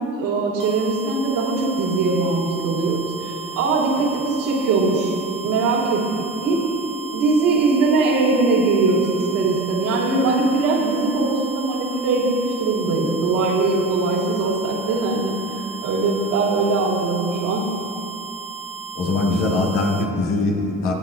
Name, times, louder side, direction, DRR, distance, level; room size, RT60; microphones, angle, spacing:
voice 1, 0.1-5.1 5.4-6.6 7.1-17.7, right 3 dB, 80° right, -3 dB, 3.0 m, -21 dB
sound 1, 0.6-20.1, right 6 dB, 20° right, 0.6 m, -35 dB
voice 2, 18.9-20.9, left 2 dB, 80° left, -2 dB, 2.2 m, -21 dB
24.5 x 8.6 x 2.6 m, 2.7 s
supercardioid pair, 75°, 33 cm